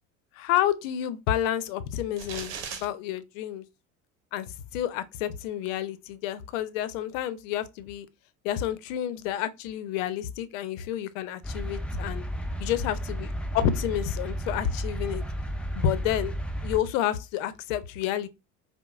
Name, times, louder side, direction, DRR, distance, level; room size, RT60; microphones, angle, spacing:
voice 1, 0.3-3.6 4.3-8.1 8.4-12.2 12.6-13.3 13.5-15.2 15.8-16.3 16.6-18.3, left 11 dB, 70° left, 0.5 m, -29 dB
sound 1, 2.2-2.8, right 6 dB, 70° right, 0.9 m, -37 dB
sound 2, 11.4-16.8, equal, 5° left, 0.3 m, -33 dB
4.6 x 2.0 x 2.3 m
hypercardioid pair, 70°, 40 cm